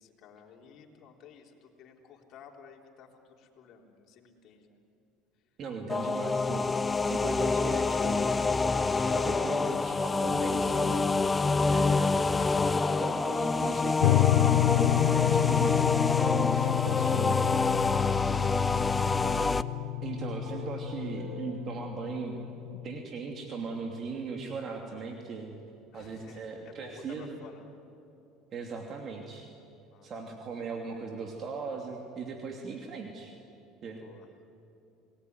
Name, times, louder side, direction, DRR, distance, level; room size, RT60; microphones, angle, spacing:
voice 1, 0.0-4.8 25.9-27.7 29.9-30.1 34.0-34.3, left 7 dB, 55° left, 0 dB, 3.8 m, -53 dB
voice 2, 5.6-6.8 7.1-8.5 9.0-11.3 11.6-12.2 13.0-17.4 20.0-22.4 22.7-25.5 25.9-27.4 28.5-29.5 30.0-33.3 33.8-34.0, right 4 dB, 45° right, 2 dB, 2.8 m, -38 dB
sound 1, 5.9-19.6, left 4 dB, 20° left, 0.7 m, -27 dB
sound 2, 7.6-21.8, right 1 dB, 70° right, 4.5 m, -46 dB
sound 3, 14.0-23.0, left 18 dB, 80° left, 0.8 m, -29 dB
28.0 x 19.5 x 9.6 m, 2.8 s
supercardioid pair, 100°, 0 cm